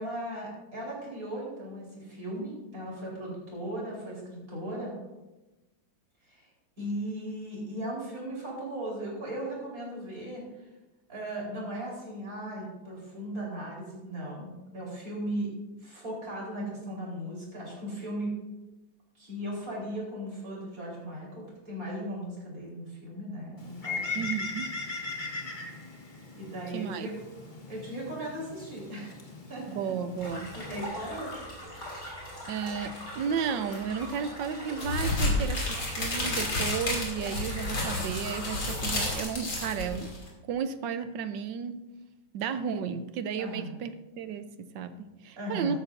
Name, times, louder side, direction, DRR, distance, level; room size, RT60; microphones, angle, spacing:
voice 1, 0.0-4.9 6.3-6.5 6.8-10.4 11.1-15.5 15.8-18.3 19.1-24.0 26.3-27.1 27.7-29.2 29.5-30.0 30.6-31.3 31.6-31.8 43.4-43.8 45.4-45.8, right 1 dB, 45° right, -4 dB, 4.8 m, -37 dB
Bird, 23.6-30.9, left 3 dB, 25° left, 1.5 m, -39 dB
voice 2, 24.1-24.8 26.7-27.1 29.7-30.5 32.5-40.1 40.5-41.8 42.3-45.8, right 7 dB, 75° right, 11 dB, 1.4 m, -33 dB
sound 1, 30.2-39.2, equal, 45° left, 4.8 m, -41 dB
sound 2, 34.8-40.3, left 2 dB, 70° left, 3.7 m, -30 dB
13.5 x 13.0 x 2.7 m, 1.1 s
omnidirectional pair, 2.1 m